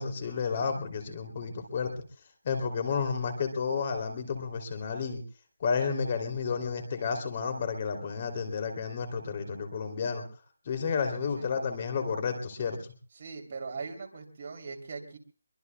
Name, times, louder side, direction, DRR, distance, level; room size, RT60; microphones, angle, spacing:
voice 1, 0.0-1.9 2.4-5.2 5.6-10.2 10.7-12.8, left 5 dB, 35° left, 6 dB, 2.8 m, -31 dB
voice 2, 13.2-15.2, right 4 dB, 45° right, 3 dB, 3.0 m, -40 dB
23.5 x 23.0 x 2.2 m, 0.38 s
figure-of-eight pair, 165°, 0 cm